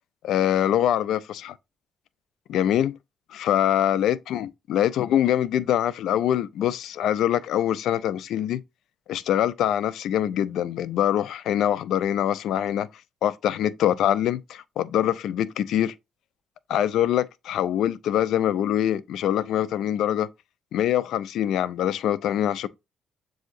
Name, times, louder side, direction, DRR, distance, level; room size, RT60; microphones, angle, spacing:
voice 1, 0.2-1.5 2.5-3.0 3.3-8.6 9.1-12.9 13.2-15.9 16.7-20.3 20.7-22.7, left 11 dB, 80° left, 0.4 m, -24 dB
7.3 x 2.8 x 2.5 m
cardioid pair, 90°, 0 cm